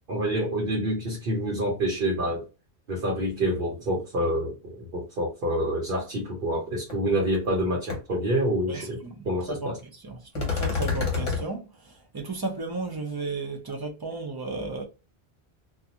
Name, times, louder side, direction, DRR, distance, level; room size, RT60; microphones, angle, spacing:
voice 1, 0.1-2.4 2.9-9.8, right 1 dB, 60° right, 1.0 m, -27 dB
sound 1, 6.9-7.0 7.3-7.6 7.9-8.0 10.4-11.4, left 5 dB, 35° left, 0.9 m, -27 dB
voice 2, 8.7-9.7 10.0-14.8, right 3 dB, 30° right, 0.5 m, -34 dB
2.5 x 2.3 x 2.7 m
omnidirectional pair, 1.1 m